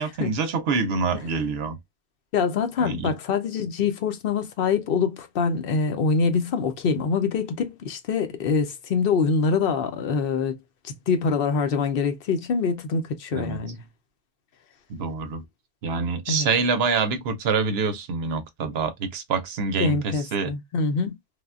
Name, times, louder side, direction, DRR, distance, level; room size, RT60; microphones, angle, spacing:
voice 1, 0.0-1.8 2.8-3.1 13.3-13.6 14.9-15.4 15.8-20.5, right 4 dB, 70° right, 0.8 m, -26 dB
voice 2, 2.3-10.6 10.8-13.8 16.3-16.5 19.8-21.2, left 5 dB, 65° left, 0.7 m, -24 dB
3.3 x 2.2 x 2.3 m
omnidirectional pair, 1.2 m